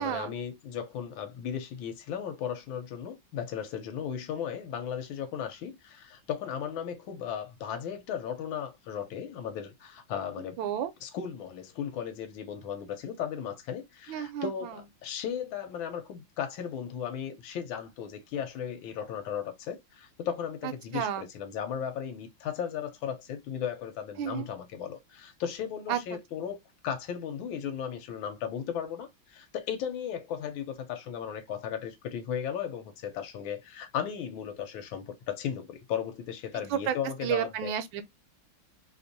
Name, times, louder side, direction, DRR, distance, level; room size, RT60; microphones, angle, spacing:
voice 1, 0.0-10.6 11.0-26.6 26.8-37.7, left 8 dB, 80° left, 1.4 m, -36 dB
voice 2, 10.6-10.9 14.1-14.5 20.9-21.2 24.2-24.5 25.9-26.0 36.7-37.0 37.2-38.0, right 10 dB, 75° right, 1.3 m, -30 dB
3.4 x 2.5 x 2.6 m
omnidirectional pair, 2.3 m